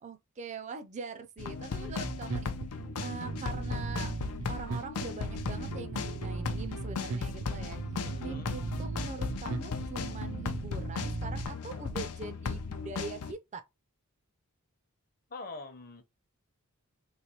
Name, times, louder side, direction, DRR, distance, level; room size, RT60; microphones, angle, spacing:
voice 1, 0.0-2.6 3.0-4.1 4.5-7.8 8.2-13.6, right 5 dB, 30° right, 0.4 m, -42 dB
sound 1, 1.4-13.3, left 4 dB, 80° left, 0.5 m, -37 dB
Bass guitar, 1.9-11.5, right 3 dB, 85° right, 0.6 m, -38 dB
voice 2, 8.0-8.5 15.3-16.0, left 3 dB, 40° left, 0.7 m, -44 dB
3.2 x 3.0 x 2.9 m
head